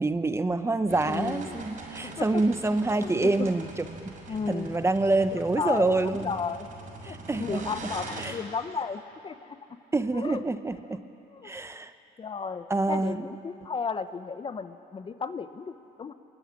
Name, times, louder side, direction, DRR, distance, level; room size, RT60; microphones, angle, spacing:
voice 1, 0.0-4.1 4.5-6.3 7.0-7.7 8.2-8.4 9.9-11.0 11.4-11.9 12.7-13.2, right 2 dB, 15° right, 10 dB, 1.0 m, -27 dB
sound 1, 0.9-8.3, right 3 dB, 50° right, 6.5 m, -42 dB
voice 2, 1.1-1.6 2.0-2.4 2.9-3.5 4.3-4.8 5.3-6.7 7.1-9.6 10.1-10.4 11.3-11.5 12.2-16.1, left 5 dB, 30° left, 11 dB, 1.0 m, -34 dB
25.0 x 22.0 x 9.7 m, 2.9 s
cardioid pair, 110°, 17 cm